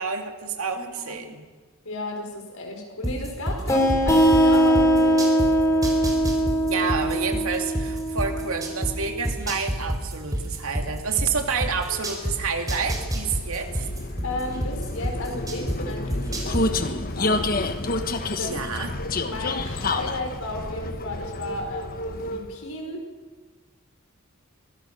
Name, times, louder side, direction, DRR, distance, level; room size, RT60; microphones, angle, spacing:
voice 1, 0.0-1.4 6.7-13.9 18.4-18.9, right 5 dB, 80° right, 4 dB, 2.5 m, -29 dB
voice 2, 0.7-1.2 1.8-5.3 6.7-6.9 14.2-17.6 18.4-18.6 19.0-23.1, left 2 dB, 80° left, 2 dB, 5.1 m, -34 dB
sound 1, 3.0-5.5 5.8-8.9 9.2-12.3 12.7-15.8 16.1-16.6, equal, 15° right, 4.0 m, -27 dB
sound 2, 3.7-9.0, right 1 dB, 15° left, 3.4 m, -21 dB
Vehicle, 11.0-22.7, left 2 dB, 45° left, 1.3 m, -30 dB
24.5 x 17.5 x 6.9 m, 1.3 s
head